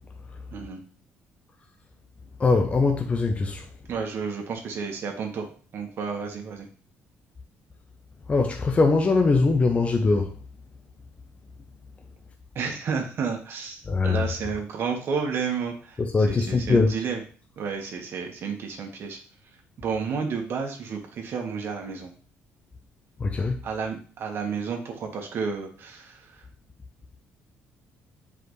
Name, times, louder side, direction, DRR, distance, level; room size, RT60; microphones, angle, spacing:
voice 1, 0.5-0.8 3.9-6.7 12.6-16.0 16.3-17.2 17.6-19.2 19.8-22.1 23.6-26.4, right 5 dB, 55° right, 2 dB, 1.6 m, -31 dB
voice 2, 2.4-3.6 8.3-10.3 13.9-14.2 16.0-16.9 23.2-23.6, left 3 dB, 25° left, 3 dB, 0.9 m, -22 dB
7.8 x 5.0 x 3.3 m, 0.41 s
cardioid pair, 105°, 5 cm